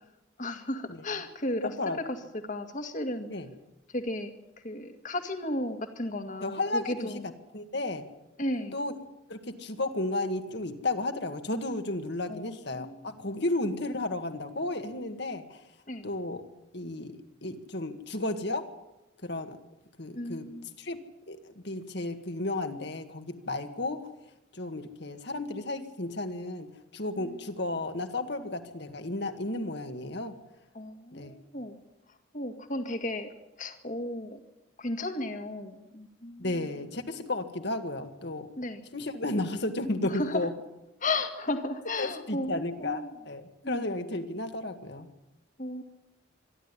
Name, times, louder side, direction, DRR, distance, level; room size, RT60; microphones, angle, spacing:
voice 1, 0.4-2.2 2.4-3.3 3.9-4.3 4.6-7.2 8.4-8.8 12.3-13.0 15.9-16.1 20.2-20.7 27.2-27.4 30.7-31.8 32.3-33.3 33.6-34.4 34.8-36.6 38.6-38.8 39.1-39.2 40.0-40.5 41.0-43.1 43.6-43.8 45.6-45.8, left 1 dB, 40° left, 7 dB, 1.9 m, -34 dB
voice 2, 1.6-2.0 3.3-3.5 6.4-7.2 7.5-8.1 8.7-8.9 9.3-15.6 16.0-16.4 16.7-18.7 19.2-19.6 20.0-20.5 20.8-21.0 21.3-21.4 21.6-24.0 24.5-26.7 26.9-30.3 31.1-31.4 36.4-38.5 38.9-40.5 42.0-45.1, left 2 dB, 55° left, 7 dB, 1.9 m, -33 dB
25.5 x 12.0 x 9.9 m, 0.95 s
head